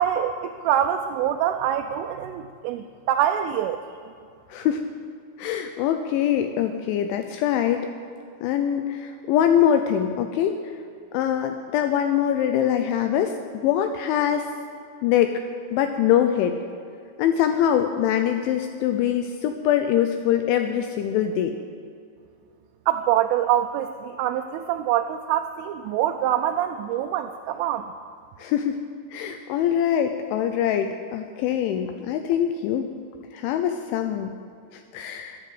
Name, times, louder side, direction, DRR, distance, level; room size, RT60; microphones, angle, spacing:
voice 1, 0.0-3.8 22.9-27.9, right 11 dB, 85° right, 5 dB, 3.0 m, -25 dB
voice 2, 4.5-4.9 5.4-7.8 8.4-10.6 11.1-14.5 15.0-15.3 15.7-16.6 17.2-21.5 28.4-28.8 29.1-33.0 33.3-34.3 34.7-35.4, left 10 dB, 85° left, 7 dB, 2.8 m, -23 dB
12.0 x 11.0 x 7.8 m, 2.4 s
omnidirectional pair, 6.0 m